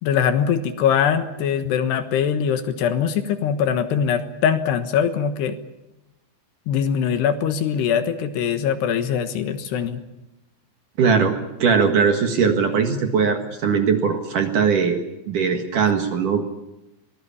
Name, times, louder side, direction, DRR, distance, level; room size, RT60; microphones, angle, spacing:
voice 1, 0.0-5.6 6.7-10.0, left 8 dB, 75° left, 8 dB, 3.3 m, -22 dB
voice 2, 11.0-11.3 11.6-15.0 15.3-16.4, right 6 dB, 60° right, 5 dB, 2.7 m, -20 dB
24.0 x 19.0 x 8.6 m, 0.95 s
omnidirectional pair, 5.1 m